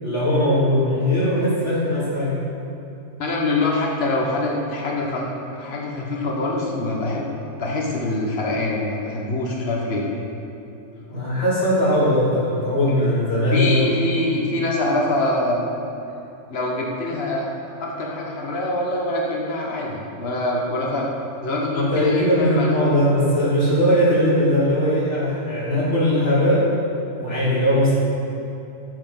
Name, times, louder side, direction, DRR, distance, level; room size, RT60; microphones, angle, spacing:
voice 1, 0.0-2.4 11.1-14.0 21.7-26.6 27.2-28.0, equal, 20° left, -8 dB, 3.7 m, -19 dB
voice 2, 3.2-7.3 7.6-10.0 12.8-13.0 13.5-15.6 16.5-17.5 17.8-21.1 21.4-22.7, left 2 dB, 70° left, -2 dB, 0.5 m, -24 dB
13.0 x 9.1 x 6.3 m, 2.9 s
omnidirectional pair, 3.4 m